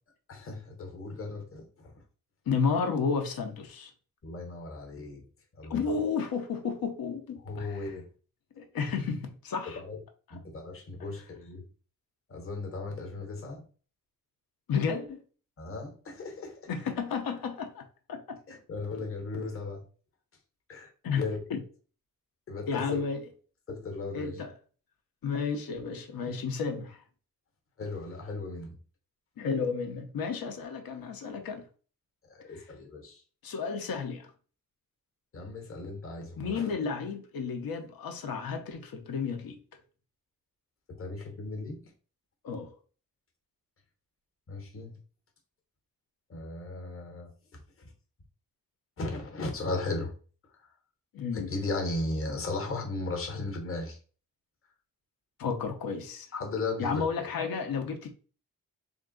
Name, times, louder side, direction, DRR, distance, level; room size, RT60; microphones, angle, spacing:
voice 1, 0.3-1.9 4.2-5.2 5.6-5.8 7.5-8.0 9.7-10.0 10.3-11.7 12.3-13.6 15.6-16.6 18.5-19.8 20.7-20.9 21.2-21.4 22.5-23.0 23.7-24.4 26.3-26.4 27.8-28.8 32.3-33.2 35.3-36.7 41.0-41.8 44.5-44.9 46.3-47.3 47.8-47.9 49.0-50.1 51.3-54.0 56.3-57.0, left 3 dB, 40° left, 0.9 m, -36 dB
voice 2, 2.5-3.9 5.7-8.0 8.6-9.8 10.3-10.4 14.7-15.2 16.7-18.4 21.0-21.6 22.7-23.2 24.1-24.5 25.2-27.0 29.4-31.6 32.5-32.7 33.4-34.3 36.4-39.6 42.4-42.7 51.1-51.5 55.4-56.3 56.8-58.1, left 5 dB, 90° left, 0.8 m, -32 dB
3.6 x 2.5 x 3.7 m
wide cardioid pair, 180°, 34 cm